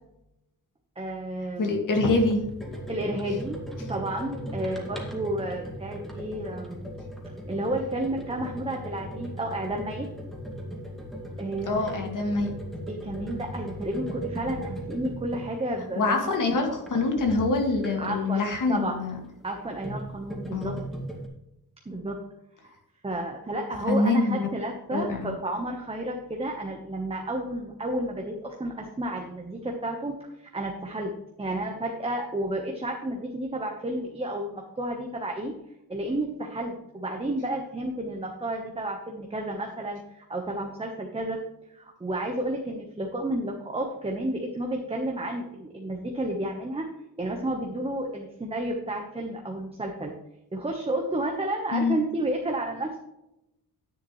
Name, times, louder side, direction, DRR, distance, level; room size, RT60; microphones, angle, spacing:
voice 1, 1.0-1.8 2.9-6.8 7.5-10.1 11.4-11.9 12.9-16.2 18.0-19.0 19.4-20.8 21.8-22.2 22.6-22.7 23.0-35.5 35.9-41.4 41.7-46.9 47.2-50.1 50.5-53.0, right 1 dB, 15° right, 1 dB, 1.1 m, -31 dB
voice 2, 1.6-2.4 11.7-12.5 16.0-19.2 20.5-20.8 23.9-24.5 24.9-25.4 51.7-52.0, left 3 dB, 55° left, 3 dB, 2.2 m, -25 dB
sound 1, 1.9-18.3 19.4-21.3, equal, ahead, 2.0 m, -38 dB
10.5 x 9.8 x 3.2 m, 0.88 s
wide cardioid pair, 155°, 38 cm